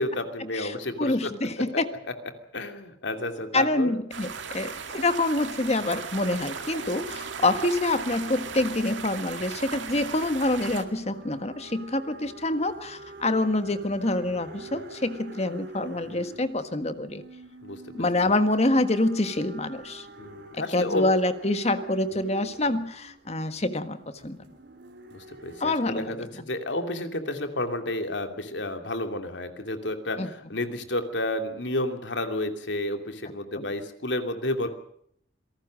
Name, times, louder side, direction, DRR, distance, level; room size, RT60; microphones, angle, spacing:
voice 1, 0.0-1.8 2.5-3.9 14.7-14.8 17.6-18.1 20.2-21.0 25.1-34.7, left 1 dB, 75° left, 7 dB, 2.8 m, -31 dB
voice 2, 0.5-1.9 3.5-17.2 17.9-20.1 20.7-24.0 24.2-24.4 25.6-26.2 30.2-30.3 33.5-33.7, left 2 dB, 35° left, 10 dB, 1.5 m, -26 dB
sound 1, 4.1-10.8, right 6 dB, 85° right, 2.2 m, -37 dB
sound 2, 6.3-26.0, right 2 dB, 65° right, 4.4 m, -46 dB
27.0 x 18.5 x 6.4 m, 0.67 s
head